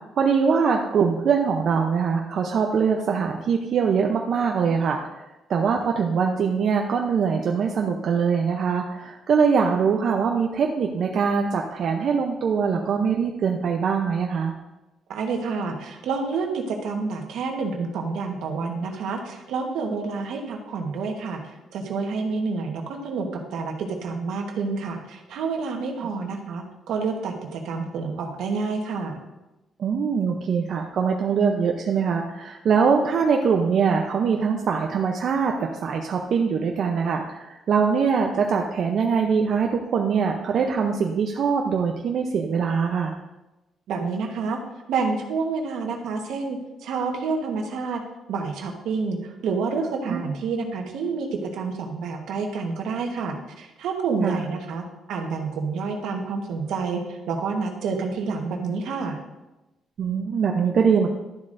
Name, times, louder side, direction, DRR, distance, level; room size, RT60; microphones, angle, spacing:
voice 1, 0.2-14.5 29.8-43.2 50.1-50.2 54.2-54.4 60.0-61.1, right 6 dB, 60° right, 2 dB, 0.7 m, -23 dB
voice 2, 15.1-21.4 21.7-29.2 43.9-44.6 44.9-48.0 48.3-59.2, right 4 dB, 80° right, 3 dB, 1.3 m, -28 dB
12.0 x 7.3 x 2.6 m, 1.0 s
cardioid pair, 90°, 0 cm